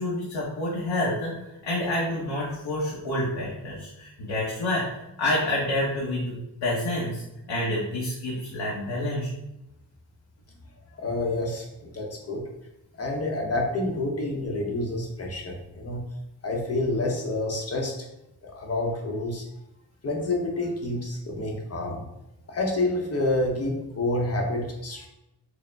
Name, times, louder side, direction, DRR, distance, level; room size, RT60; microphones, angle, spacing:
voice 1, 0.0-4.8 5.2-6.3 6.6-9.3, left 1 dB, 90° left, -6 dB, 1.0 m, -28 dB
voice 2, 11.0-12.4 13.0-16.0 16.4-17.9 18.4-19.4 20.0-22.0 22.5-25.1, left 2 dB, 35° left, 0 dB, 0.8 m, -28 dB
4.9 x 2.1 x 3.3 m, 0.88 s
wide cardioid pair, 145°, 44 cm